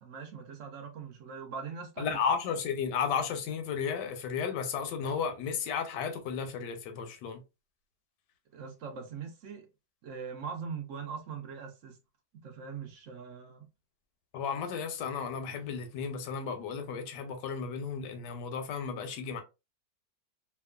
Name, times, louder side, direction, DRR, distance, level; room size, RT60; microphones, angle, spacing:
voice 1, 0.0-2.2 8.5-9.7 10.0-12.0 12.3-13.7, right 6 dB, 70° right, 0.7 m, -41 dB
voice 2, 2.0-7.4 14.3-19.4, left 6 dB, 80° left, 1.2 m, -33 dB
2.9 x 2.3 x 2.3 m
omnidirectional pair, 1.9 m